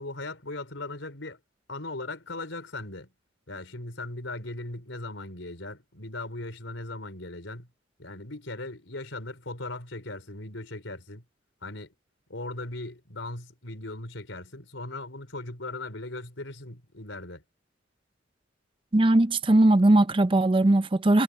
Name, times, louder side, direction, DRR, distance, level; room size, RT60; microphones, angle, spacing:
voice 1, 0.0-1.4 1.7-3.1 3.5-7.7 8.0-11.2 11.6-11.9 12.3-17.4, left 2 dB, 80° left, 4.6 m, -38 dB
voice 2, 18.9-21.2, right 1 dB, 25° right, 0.5 m, -19 dB
head